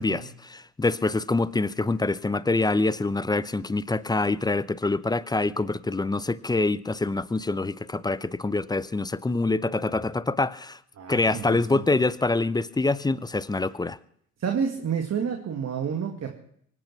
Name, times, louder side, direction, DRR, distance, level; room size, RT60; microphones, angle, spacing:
voice 1, 0.0-10.8 11.1-14.0, left 3 dB, 10° left, 18 dB, 0.6 m, -25 dB
voice 2, 11.0-11.8 14.4-16.3, right 7 dB, 40° right, 3 dB, 2.2 m, -30 dB
24.0 x 9.0 x 6.0 m, 0.67 s
hypercardioid pair, 55°, 39 cm